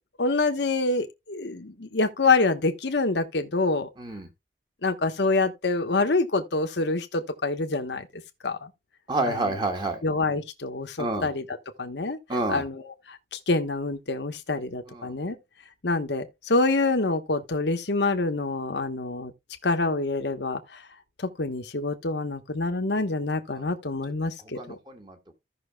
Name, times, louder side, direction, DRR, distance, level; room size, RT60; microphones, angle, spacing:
voice 1, 0.2-3.9 4.8-8.1 8.4-8.7 9.3-9.6 10.0-12.2 12.5-15.4 15.8-19.3 19.6-20.8 21.2-24.8, left 3 dB, 75° left, 1.1 m, -26 dB
voice 2, 4.0-4.3 9.1-10.0 11.0-11.3 12.3-12.6 14.9-15.1 24.6-25.4, right 2 dB, 25° right, 1.7 m, -29 dB
15.5 x 6.0 x 2.2 m
head